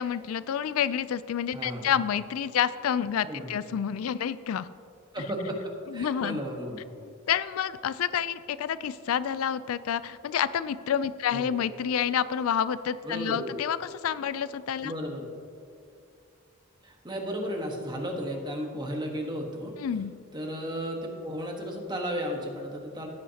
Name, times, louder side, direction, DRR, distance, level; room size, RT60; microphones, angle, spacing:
voice 1, 0.0-4.7 5.9-6.4 7.3-14.9 19.8-20.1, left 8 dB, 85° left, 15 dB, 0.4 m, -29 dB
voice 2, 1.5-1.9 3.3-3.5 5.1-5.6 5.8-6.8 11.3-11.5 13.0-13.5 14.8-15.3 16.8-19.8 20.3-23.1, equal, 20° right, 1 dB, 1.3 m, -34 dB
16.5 x 8.6 x 2.8 m, 2.3 s
head